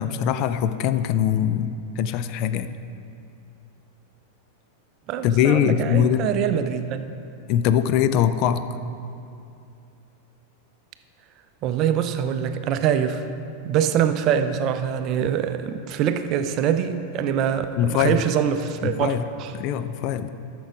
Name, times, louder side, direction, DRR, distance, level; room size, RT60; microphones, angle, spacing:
voice 1, 0.0-2.8 5.2-6.3 7.5-8.7 15.2-15.3 17.8-18.2 18.8-19.2 19.5-20.3, left 9 dB, 40° left, 11 dB, 0.4 m, -22 dB
voice 2, 5.1-7.0 11.6-13.3 13.6-19.5, right 9 dB, 40° right, 9 dB, 0.5 m, -24 dB
13.0 x 6.1 x 4.9 m, 2.6 s
figure-of-eight pair, 90°, 0 cm